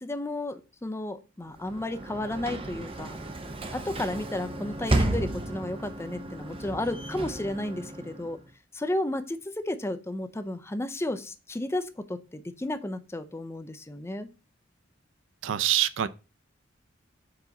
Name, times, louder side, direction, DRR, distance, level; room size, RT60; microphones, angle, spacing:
voice 1, 0.0-3.2 3.7-8.4 8.7-14.3, left 1 dB, 15° left, 0.5 m, -33 dB
Sliding door / Slam, 1.5-8.5, right 2 dB, 30° right, 0.7 m, -33 dB
voice 2, 15.4-16.1, right 12 dB, 75° right, 0.4 m, -25 dB
4.8 x 3.9 x 5.8 m
head